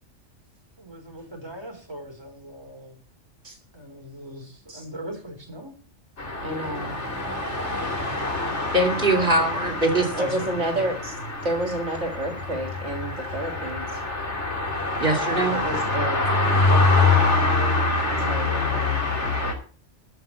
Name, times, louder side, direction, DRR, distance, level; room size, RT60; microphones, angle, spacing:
voice 1, 0.8-3.0 3.7-5.7 9.3-9.4 10.1-10.5, equal, 20° right, 2 dB, 4.1 m, -38 dB
sound 1, 6.2-19.5, left 3 dB, 65° left, 3.7 m, -25 dB
voice 2, 6.4-7.0 10.2-14.0 15.5-16.3 16.7-19.1, right 1 dB, 70° right, 5 dB, 2.2 m, -30 dB
voice 3, 8.7-10.1 15.0-15.6, right 2 dB, 45° right, 3 dB, 3.3 m, -22 dB
13.5 x 5.7 x 9.5 m, 0.39 s
omnidirectional pair, 1.3 m